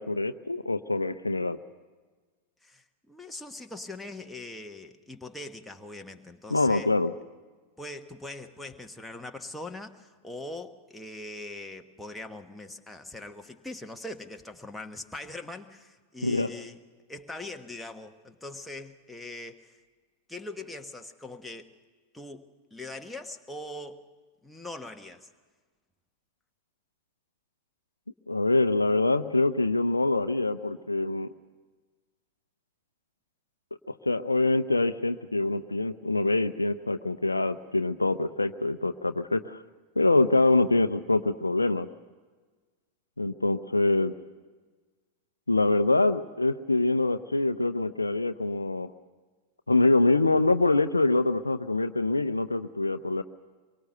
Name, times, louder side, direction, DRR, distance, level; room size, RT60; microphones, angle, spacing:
voice 1, 0.0-1.6 6.5-7.1 16.2-16.5 28.3-31.3 34.0-39.6 40.0-41.9 43.2-44.1 45.5-48.9 49.7-53.2, left 2 dB, 80° left, 11 dB, 0.6 m, -25 dB
voice 2, 2.6-6.9 7.8-16.8 17.1-19.7 20.3-21.7 22.1-24.0 24.4-25.3, left 2 dB, 5° left, 4 dB, 1.4 m, -41 dB
24.0 x 23.0 x 6.7 m, 1.4 s
figure-of-eight pair, 90°, 0 cm